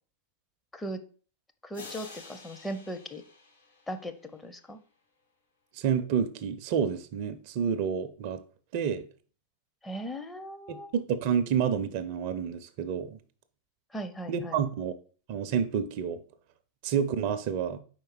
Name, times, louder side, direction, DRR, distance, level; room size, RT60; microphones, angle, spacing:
voice 1, 1.6-3.2 3.9-4.8 9.8-10.9 13.9-14.6, right 1 dB, 10° left, 0.6 m, -38 dB
sound 1, 1.7-4.4, left 3 dB, 80° left, 1.8 m, -49 dB
voice 2, 5.8-8.4 8.7-9.0 10.7-13.2 14.3-14.9 15.3-16.2 16.8-17.8, right 7 dB, 45° right, 0.5 m, -29 dB
4.7 x 4.3 x 4.6 m
figure-of-eight pair, 90°, 0 cm